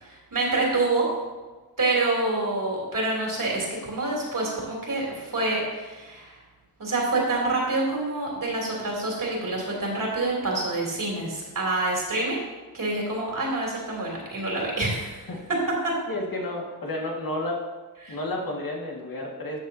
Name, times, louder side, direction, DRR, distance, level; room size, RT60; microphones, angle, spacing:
voice 1, 0.0-1.1 1.8-6.4 6.8-12.4 12.7-15.6 15.8-15.9 18.0-18.2, right 2 dB, 60° right, -3 dB, 3.1 m, -27 dB
voice 2, 16.1-17.6 18.1-19.6, left 1 dB, 65° left, -1 dB, 2.0 m, -31 dB
12.5 x 7.2 x 2.8 m, 1.2 s
wide cardioid pair, 75°, 37 cm